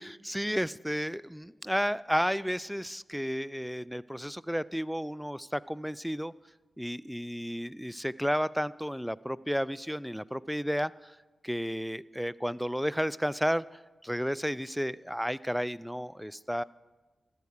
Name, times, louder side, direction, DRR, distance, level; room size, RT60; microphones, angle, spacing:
voice 1, 0.0-6.3 6.8-11.1 11.4-13.6 14.0-16.6, equal, ahead, 19 dB, 0.3 m, -32 dB
14.0 x 4.8 x 7.1 m, 1.2 s
supercardioid pair, 40°, 0 cm